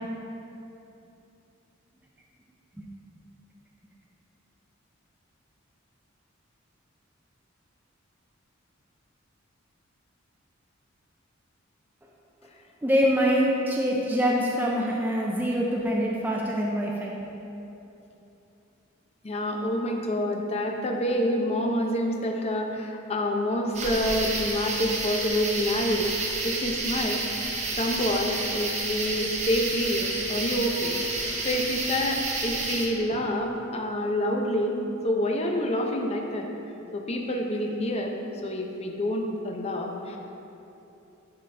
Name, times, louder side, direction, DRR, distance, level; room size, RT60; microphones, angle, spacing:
voice 1, 12.8-17.1, equal, 10° right, -3 dB, 0.4 m, -24 dB
voice 2, 19.2-26.1 26.4-27.3 27.7-36.5 36.9-38.1 38.4-40.2, left 1 dB, 30° left, 2 dB, 0.6 m, -27 dB
sound 1, 23.7-32.9, right 3 dB, 35° right, 0.8 m, -30 dB
10.5 x 3.9 x 3.3 m, 2.9 s
head